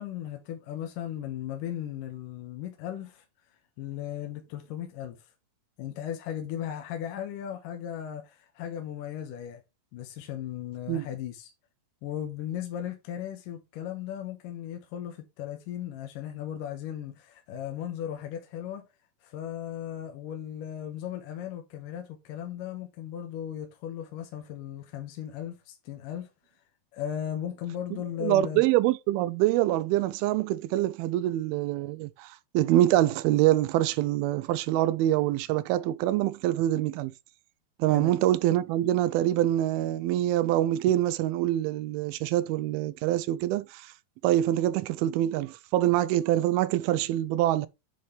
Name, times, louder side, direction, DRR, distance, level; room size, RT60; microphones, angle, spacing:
voice 1, 0.0-3.2 3.8-5.2 5.8-9.6 9.9-11.5 12.0-18.8 19.2-26.3 26.9-28.6 37.9-38.1, left 10 dB, 70° left, 2.5 m, -36 dB
voice 2, 28.2-37.1 37.8-43.9 44.2-47.7, right 14 dB, 90° right, 2.4 m, -25 dB
9.6 x 4.2 x 3.2 m
omnidirectional pair, 4.3 m